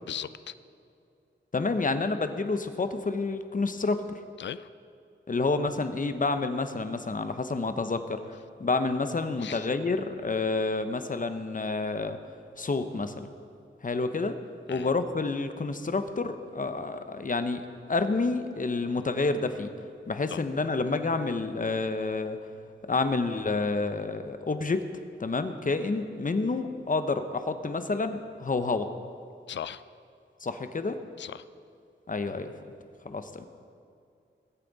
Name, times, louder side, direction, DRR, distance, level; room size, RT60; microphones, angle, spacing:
voice 1, 0.1-0.5 4.4-4.7 9.4-9.7 14.7-14.9 20.3-20.4 29.5-29.8 31.2-31.4, left 9 dB, 65° left, 15 dB, 0.4 m, -38 dB
voice 2, 1.5-4.2 5.3-12.2 12.6-13.3 13.8-14.4 14.7-17.6 17.9-19.7 20.1-22.4 22.9-24.8 25.2-28.9 30.4-31.0 32.1-32.5 33.0-33.5, left 3 dB, 40° left, 9 dB, 0.9 m, -29 dB
21.0 x 8.4 x 4.1 m, 2.5 s
cardioid pair, 65°, 20 cm